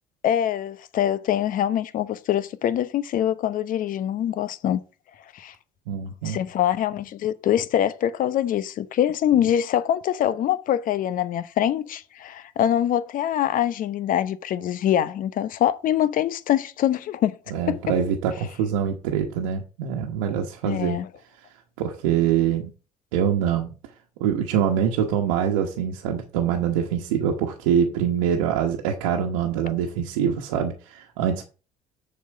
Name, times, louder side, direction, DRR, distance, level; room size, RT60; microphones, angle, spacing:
voice 1, 0.2-4.8 5.3-5.5 6.2-17.4 17.7-17.8 20.6-21.1, left 11 dB, 55° left, 0.8 m, -24 dB
voice 2, 5.9-6.4 17.5-21.0 21.8-22.7 23.1-23.7 24.2-31.4, right 8 dB, 80° right, 1.2 m, -24 dB
7.1 x 4.3 x 6.6 m
hypercardioid pair, 65°, 17 cm